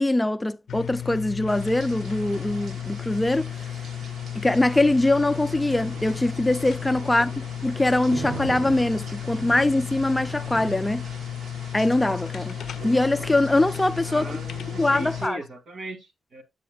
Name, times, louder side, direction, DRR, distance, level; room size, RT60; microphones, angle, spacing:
voice 1, 0.0-3.5 4.4-7.3 7.6-11.0 11.7-12.6 12.8-14.3 14.8-15.4, left 2 dB, 10° left, 0.3 m, -22 dB
sound 1, 0.7-15.3, left 10 dB, 80° left, 0.4 m, -34 dB
sound 2, 1.5-15.3, right 4 dB, 85° right, 1.5 m, -41 dB
voice 2, 7.0-7.4 14.0-16.4, right 1 dB, 70° right, 2.1 m, -38 dB
8.8 x 7.8 x 2.3 m
wide cardioid pair, 145°, 0 cm